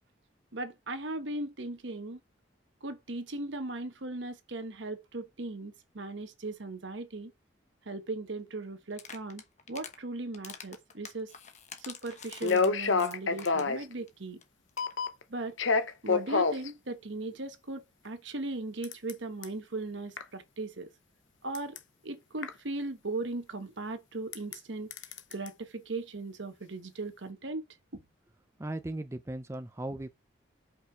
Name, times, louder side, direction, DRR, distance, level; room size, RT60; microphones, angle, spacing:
voice 1, 0.5-2.2 2.8-7.3 7.9-9.4 9.7-11.3 11.9-14.4 15.3-15.6 16.0-20.9 21.4-21.8 22.0-24.9 25.3-27.6 27.9-28.0, right 2 dB, 75° right, 1.2 m, -38 dB
sound 1, 8.9-10.0 10.3-13.8 14.1-14.2 14.4-14.5 14.7-14.9, left 7 dB, 35° left, 1.0 m, -47 dB
sound 2, 12.1-12.2 12.4-13.8 14.8-15.2 15.6-16.7 18.8-19.1 19.4-19.5 20.2-20.3 21.5-21.8 22.4-22.5 24.3-24.5 24.9-25.5, left 4 dB, 80° left, 0.9 m, -27 dB
voice 2, 28.6-30.1, right 1 dB, 15° right, 0.4 m, -37 dB
5.4 x 4.7 x 5.0 m
head